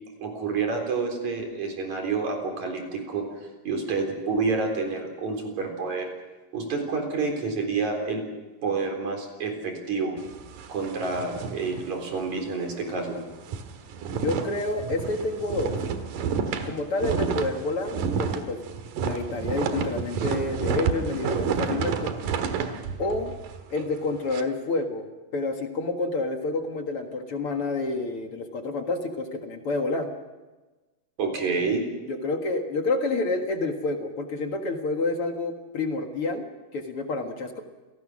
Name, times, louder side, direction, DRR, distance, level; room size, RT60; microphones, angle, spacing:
voice 1, 0.2-3.2 3.7-6.1 6.5-8.2 8.6-10.1 10.7-13.2 31.2-31.9, right 4 dB, 60° right, 3 dB, 5.2 m, -28 dB
sound 1, 10.2-12.4 12.8-12.9 13.2-24.4, right 6 dB, 85° right, 3.1 m, -30 dB
voice 2, 14.1-15.8 16.6-18.6 19.0-22.1 23.0-23.3 23.7-30.1 32.1-36.5 36.7-37.6, left 3 dB, 50° left, 4 dB, 2.3 m, -29 dB
28.0 x 18.0 x 6.3 m, 1.2 s
omnidirectional pair, 3.8 m